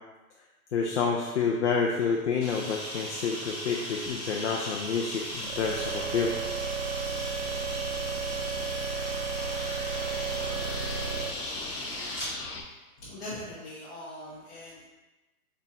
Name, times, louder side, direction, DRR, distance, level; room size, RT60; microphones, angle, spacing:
voice 1, 0.7-6.4, left 5 dB, 50° left, -1 dB, 0.5 m, -28 dB
Camera, 2.4-12.3, equal, 5° right, 1.4 m, -38 dB
sound 1, 5.3-11.3, right 5 dB, 50° right, 0.5 m, -33 dB
sound 2, 5.4-12.6, left 3 dB, 85° left, 0.9 m, -42 dB
voice 2, 13.0-14.8, left 1 dB, 30° left, -9 dB, 1.0 m, -41 dB
4.2 x 3.9 x 2.5 m, 1.1 s
hypercardioid pair, 160°, 45 cm